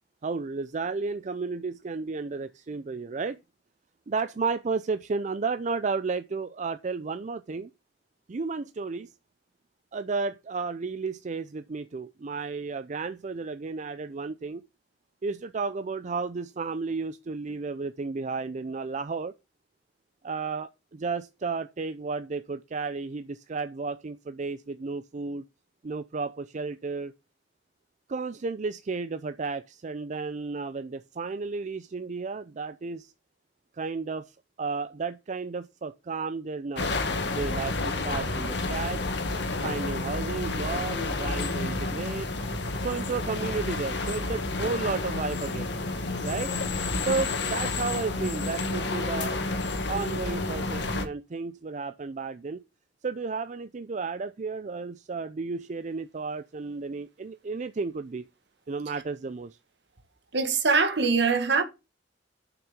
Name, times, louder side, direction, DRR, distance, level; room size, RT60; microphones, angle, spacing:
voice 1, 0.2-3.4 4.1-7.7 8.3-9.1 9.9-14.6 15.2-19.3 20.2-25.4 25.8-27.1 28.1-33.1 33.7-36.9 37.3-39.1 39.6-42.3 42.8-45.7 46.2-46.5 47.0-49.3 49.9-52.6 53.0-58.3 58.7-59.6, right 4 dB, 40° right, 0.4 m, -33 dB
sound 1, 36.8-51.0, left 2 dB, 70° left, 1.7 m, -30 dB
voice 2, 60.3-61.6, right 4 dB, 65° right, 1.7 m, -23 dB
7.1 x 6.0 x 7.2 m
head